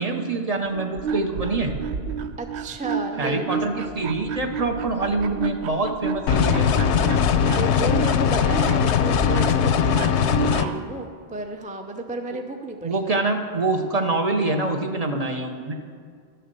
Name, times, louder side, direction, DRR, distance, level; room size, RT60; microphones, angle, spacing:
voice 1, 0.0-1.7 3.2-6.7 12.8-15.7, right 3 dB, 40° right, 4 dB, 0.8 m, -25 dB
sound 1, 0.7-10.9, right 6 dB, 80° right, 0.9 m, -31 dB
voice 2, 2.4-4.0 7.2-13.3, right 2 dB, 10° right, 5 dB, 0.5 m, -33 dB
sound 2, 6.3-10.7, left 8 dB, 85° left, 0.9 m, -20 dB
12.0 x 6.8 x 7.5 m, 2.1 s
omnidirectional pair, 1.1 m